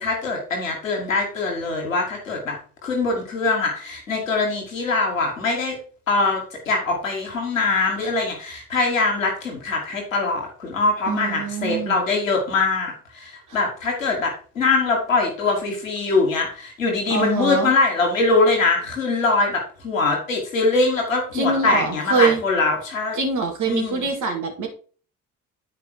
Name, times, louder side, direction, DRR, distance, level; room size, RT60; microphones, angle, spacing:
voice 1, 0.0-2.6 2.8-5.8 6.1-23.2 23.7-24.1, left 3 dB, 85° left, 1 dB, 1.8 m, -22 dB
voice 2, 11.1-12.0 13.5-13.6 17.1-17.7 21.3-22.4 23.2-24.7, right 4 dB, 50° right, 3 dB, 2.6 m, -24 dB
9.1 x 4.8 x 4.6 m, 0.41 s
figure-of-eight pair, 45°, 38 cm